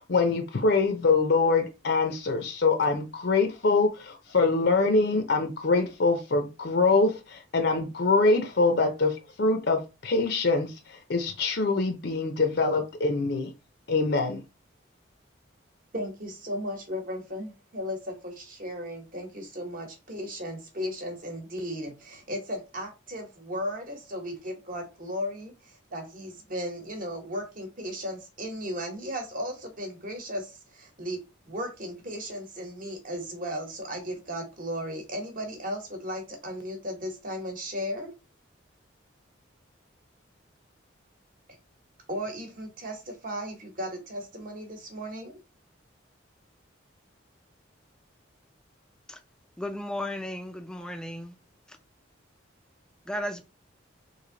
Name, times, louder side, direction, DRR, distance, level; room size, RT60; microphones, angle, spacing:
voice 1, 0.0-13.5 13.9-14.4, left 3 dB, 55° left, 0.5 m, -24 dB
voice 2, 15.9-38.1 42.1-45.4, equal, 45° right, 1.0 m, -36 dB
voice 3, 49.6-51.3 53.1-53.4, left 1 dB, 5° left, 0.3 m, -34 dB
3.1 x 2.6 x 3.8 m
head